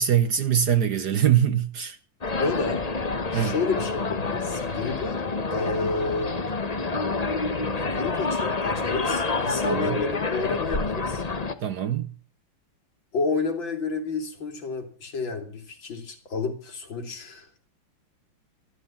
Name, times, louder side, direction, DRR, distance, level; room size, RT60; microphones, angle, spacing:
voice 1, 0.0-2.0 3.3-3.5 9.7-10.0 11.6-12.1, right 9 dB, 60° right, 1.3 m, -23 dB
sound 1, 2.2-11.5, left 3 dB, 30° left, 0.7 m, -28 dB
voice 2, 2.4-2.8 3.3-5.2 5.5-6.4 7.7-11.2 13.1-17.7, left 4 dB, 60° left, 3.5 m, -30 dB
14.0 x 12.5 x 7.2 m
omnidirectional pair, 2.3 m